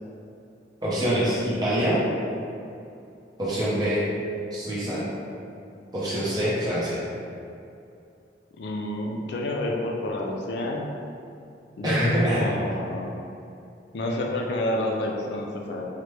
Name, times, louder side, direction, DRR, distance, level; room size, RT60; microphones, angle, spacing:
voice 1, 0.8-2.0 3.4-4.0 4.5-5.0 5.9-7.0 11.8-12.4, equal, 20° right, -9 dB, 0.7 m, -25 dB
voice 2, 8.6-10.9 11.8-13.1 13.9-15.8, left 1 dB, 65° left, 0 dB, 0.3 m, -29 dB
3.1 x 2.1 x 3.1 m, 2.6 s
head